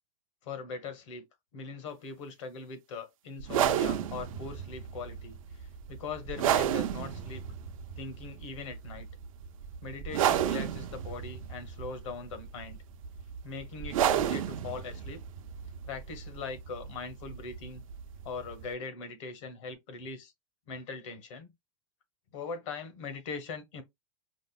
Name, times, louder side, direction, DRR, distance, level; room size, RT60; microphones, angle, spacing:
voice 1, 0.4-1.2 1.5-7.4 8.0-9.1 9.8-12.8 13.4-15.2 15.8-17.8 18.2-20.3 20.7-21.5 22.3-23.8, left 4 dB, 65° left, 1.2 m, -41 dB
sound 1, 3.4-18.7, right 10 dB, 90° right, 0.6 m, -33 dB
5.0 x 2.0 x 2.3 m
supercardioid pair, 155°, 17 cm